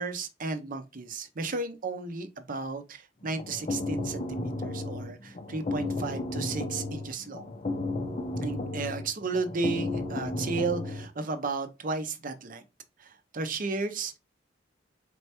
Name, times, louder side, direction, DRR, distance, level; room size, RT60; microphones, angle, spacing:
voice 1, 0.0-7.5 8.4-12.6 13.0-14.2, right 3 dB, 50° right, 0.6 m, -34 dB
sound 1, 3.2-11.1, left 2 dB, 35° left, 0.6 m, -33 dB
4.3 x 3.3 x 2.8 m
head